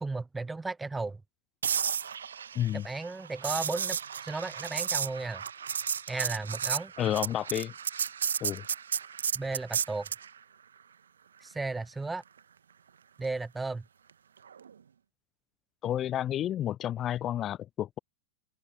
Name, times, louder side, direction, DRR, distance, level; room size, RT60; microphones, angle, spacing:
voice 1, 0.0-1.2 2.7-5.4 6.1-6.9 9.3-10.1 11.4-12.2 13.2-13.8, right 3 dB, 10° right, 0.7 m, -35 dB
sound 1, 1.6-10.3 14.5-14.7, right 7 dB, 70° right, 1.4 m, -33 dB
voice 2, 2.6-2.9 7.0-7.7 8.4-8.6 15.8-18.0, left 11 dB, 30° left, 0.4 m, -30 dB
open air
figure-of-eight pair, 90°, 0 cm